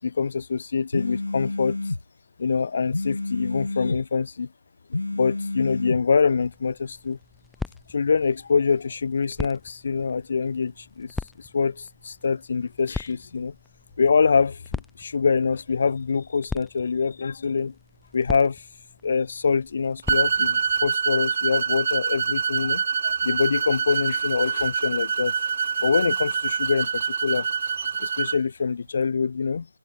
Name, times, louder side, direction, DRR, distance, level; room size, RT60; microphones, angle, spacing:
voice 1, 0.0-1.8 2.4-4.5 4.9-7.2 7.9-13.5 14.0-17.7 18.1-18.7 19.0-25.3 25.8-27.5 28.0-29.7, left 5 dB, 35° left, 2.6 m, -25 dB
sound 1, 0.9-2.0 2.9-4.0 4.9-6.0, left 2 dB, 60° left, 4.6 m, -29 dB
sound 2, 6.4-20.9, left 4 dB, ahead, 2.4 m, -40 dB
sound 3, 20.1-28.4, right 6 dB, 30° right, 1.2 m, -25 dB
figure-of-eight pair, 160°, 0 cm